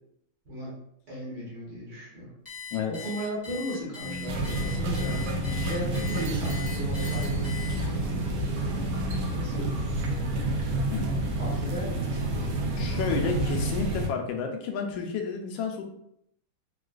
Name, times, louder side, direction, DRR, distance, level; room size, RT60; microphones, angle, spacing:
voice 1, 1.1-2.3 2.9-7.6 9.3-9.8 11.4-12.5, equal, 50° right, -7 dB, 1.5 m, -36 dB
Alarm, 2.4-8.1, left 6 dB, 20° left, 0.3 m, -41 dB
sound 1, 4.0-9.4, left 4 dB, 90° right, 0.6 m, -38 dB
sound 2, 4.3-14.1, right 2 dB, 70° right, 1.0 m, -29 dB
voice 2, 12.8-15.8, left 6 dB, 75° left, 3 dB, 1.3 m, -31 dB
3.7 x 2.4 x 2.3 m, 0.74 s
omnidirectional pair, 2.2 m